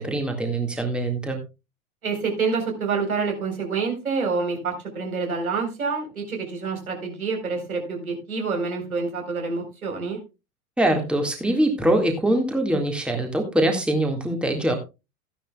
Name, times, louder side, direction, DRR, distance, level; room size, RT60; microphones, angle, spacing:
voice 1, 0.0-1.4 10.8-14.8, right 1 dB, ahead, 3 dB, 1.9 m, -23 dB
voice 2, 2.0-10.2, right 4 dB, 75° right, 2 dB, 4.3 m, -27 dB
14.5 x 10.5 x 2.3 m, 0.27 s
figure-of-eight pair, 90°, 43 cm